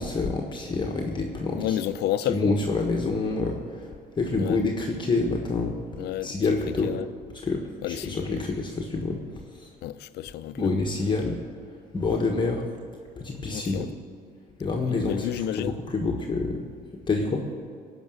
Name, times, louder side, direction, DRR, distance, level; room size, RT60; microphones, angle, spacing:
voice 1, 0.0-1.8 2.3-5.8 6.2-6.9 7.4-9.2 9.5-9.7 10.6-11.4 11.9-12.7 13.2-13.9 14.6-16.6 17.1-17.4, left 3 dB, 25° left, 1.3 m, -27 dB
voice 2, 1.6-2.4 4.4-4.6 6.0-6.4 6.8-7.1 7.8-8.3 9.8-10.7 13.5-13.9 14.9-15.8, left 12 dB, 75° left, 0.6 m, -30 dB
17.5 x 6.0 x 7.8 m
cardioid pair, 110°, 17 cm